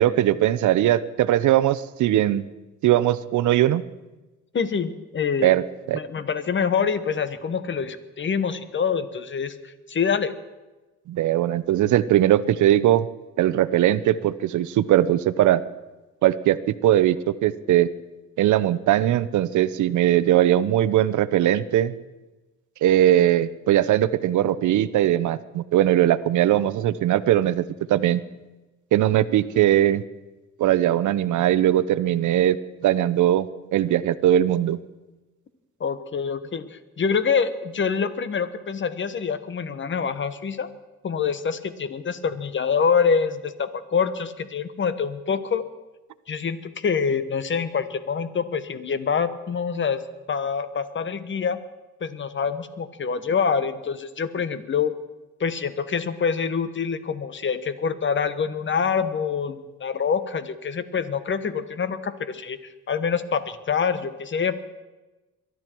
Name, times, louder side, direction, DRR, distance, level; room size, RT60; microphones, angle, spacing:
voice 1, 0.0-2.5 2.8-3.8 5.4-6.0 11.1-13.0 13.4-15.6 16.2-17.9 18.4-21.9 22.8-27.6 27.9-28.2 28.9-30.0 30.6-32.6 32.8-34.8, right 12 dB, 75° right, 15 dB, 0.8 m, -20 dB
voice 2, 4.5-5.5 5.9-10.3 35.8-40.7 41.0-45.6 46.3-50.0 50.3-51.6 52.0-54.9 55.4-64.6, left 6 dB, 40° left, 13 dB, 1.2 m, -26 dB
22.5 x 12.5 x 4.6 m, 1.1 s
cardioid pair, 90°, 30 cm